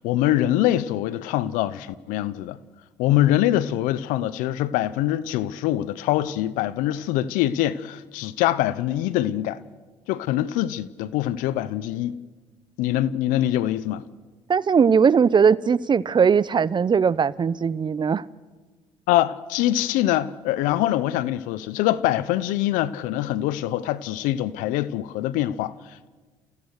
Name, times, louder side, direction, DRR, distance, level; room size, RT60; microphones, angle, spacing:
voice 1, 0.0-2.6 3.0-9.6 10.1-12.2 12.8-14.0 19.1-26.1, left 13 dB, 80° left, 0.8 m, -24 dB
voice 2, 14.5-18.2, right 6 dB, 35° right, 0.7 m, -19 dB
29.5 x 15.5 x 6.5 m
supercardioid pair, 65°, 13 cm